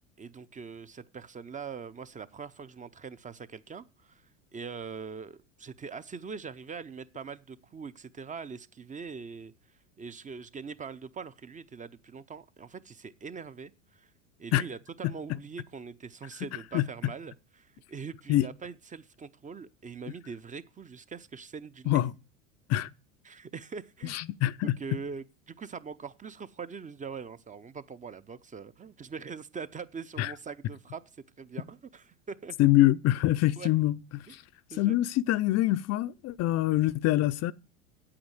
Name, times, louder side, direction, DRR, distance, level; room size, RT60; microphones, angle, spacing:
voice 1, 0.2-9.5 10.0-14.1 14.4-22.0 23.2-24.2 24.6-31.0 31.4-32.6 33.6-33.7 34.3-34.4 34.7-35.0, right 5 dB, 20° right, 0.7 m, -42 dB
voice 2, 24.0-24.8 30.2-30.3 32.6-34.4 34.7-37.5, left 15 dB, 40° left, 0.6 m, -25 dB
8.8 x 8.7 x 8.0 m
hypercardioid pair, 90°, 39 cm